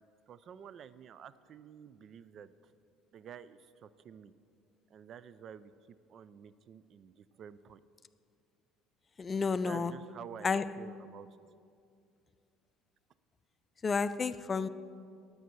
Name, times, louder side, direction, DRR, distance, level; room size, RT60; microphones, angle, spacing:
voice 1, 0.0-2.7 3.1-4.3 4.9-5.7 6.1-7.8 9.6-11.3, right 8 dB, 50° right, 0.4 m, -50 dB
voice 2, 9.2-9.9 10.4-10.7 13.8-14.7, left 5 dB, 30° left, 0.4 m, -31 dB
9.3 x 8.0 x 6.1 m
supercardioid pair, 80°, 0 cm